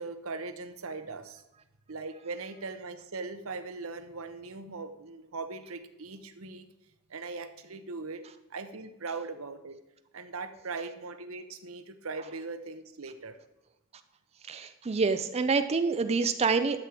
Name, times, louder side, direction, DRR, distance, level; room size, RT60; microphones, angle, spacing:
voice 1, 0.0-1.4 1.9-6.7 7.1-8.2 8.5-9.7 10.1-13.4, right 3 dB, 80° right, 9 dB, 1.0 m, -40 dB
voice 2, 14.5-16.8, right 4 dB, 30° right, 9 dB, 0.4 m, -27 dB
11.5 x 7.6 x 4.8 m, 0.95 s
head